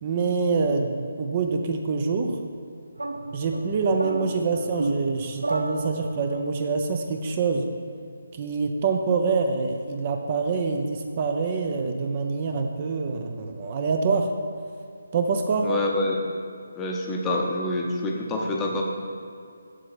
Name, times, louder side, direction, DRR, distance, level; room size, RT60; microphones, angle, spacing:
voice 1, 0.0-2.4 3.3-7.7 8.4-14.3 15.1-15.7, right 4 dB, 35° right, 4 dB, 0.6 m, -25 dB
sound 1, 3.0-6.4, right 2 dB, 85° right, 0.7 m, -32 dB
voice 2, 15.6-16.2 16.7-18.8, left 2 dB, 15° left, 0 dB, 0.8 m, -26 dB
7.4 x 6.5 x 4.3 m, 2.4 s
figure-of-eight pair, 150°, 0 cm